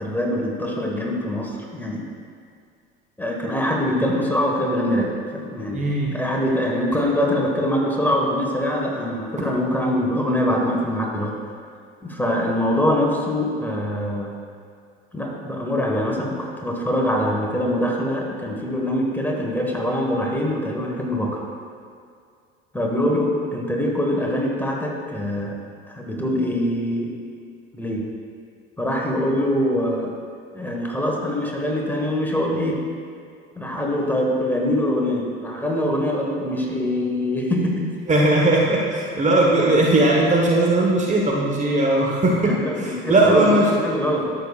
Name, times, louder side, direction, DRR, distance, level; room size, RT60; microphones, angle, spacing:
voice 1, 0.0-2.0 3.2-11.4 12.0-14.3 15.1-21.4 22.7-25.6 25.9-27.1 27.7-28.1 28.8-30.2 30.5-32.8 33.6-37.9 42.4-44.3, left 1 dB, 5° left, -1 dB, 1.5 m, -23 dB
voice 2, 5.7-6.1 38.1-43.7, right 2 dB, 25° right, -2 dB, 1.2 m, -18 dB
13.0 x 6.9 x 2.4 m, 2.2 s
hypercardioid pair, 70°, 30 cm